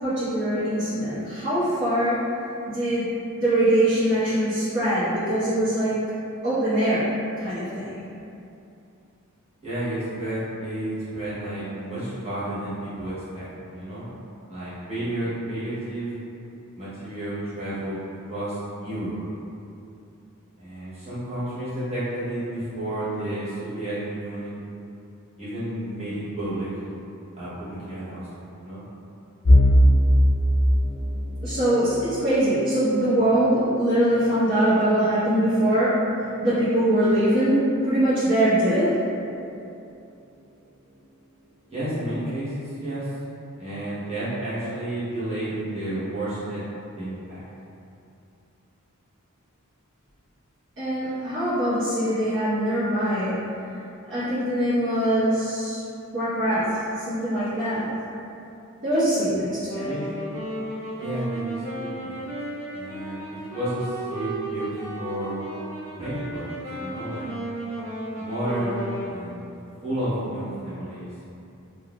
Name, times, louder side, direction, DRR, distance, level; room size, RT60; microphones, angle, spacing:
voice 1, 0.0-2.2 2.6-3.1 3.3-6.0 6.4-7.1 7.4-8.0 31.4-35.9 36.4-39.0 50.8-53.3 54.1-55.8 56.1-57.9 58.8-59.9, right 1 dB, 55° right, -17 dB, 1.1 m, -22 dB
voice 2, 9.6-14.1 14.5-16.1 16.8-18.0 18.3-19.2 20.6-24.5 25.4-26.7 27.3-28.8 41.7-43.1 43.6-46.6 47.0-47.4 59.8-60.1 61.0-62.2 62.7-65.4 66.0-67.3 68.2-69.4 69.8-71.1, right 1 dB, 30° right, -12 dB, 1.1 m, -31 dB
sound 1, 29.4-41.3 41.7-42.0 42.3-42.5 43.4-43.8, equal, 50° left, 0.7 m, -25 dB
Wind instrument woodwind instrument, 59.7-69.2, right 2 dB, 80° right, 1.2 m, -34 dB
3.7 x 2.6 x 2.4 m, 2.7 s
head